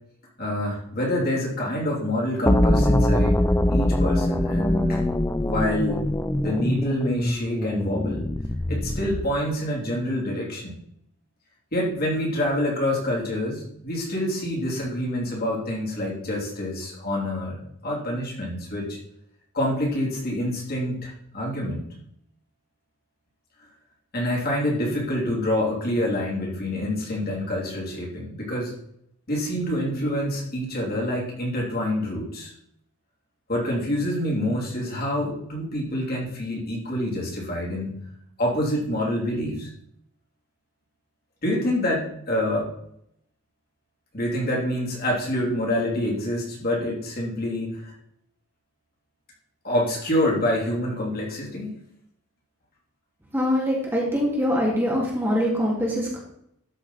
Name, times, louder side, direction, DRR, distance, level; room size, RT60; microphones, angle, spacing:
voice 1, 0.4-3.4 3.7-5.1 5.5-6.0 6.4-8.3 8.7-10.7 11.7-19.0 19.5-21.9 24.1-28.7 29.3-32.5 33.5-38.0 38.4-39.7 41.4-42.7 44.1-47.9 49.6-51.8, left 1 dB, 40° left, -4 dB, 3.3 m, -27 dB
sound 1, 2.5-9.4, left 1 dB, 10° left, 0.4 m, -23 dB
voice 2, 53.3-56.2, equal, 10° right, -4 dB, 2.3 m, -23 dB
12.5 x 6.2 x 4.2 m, 0.74 s
head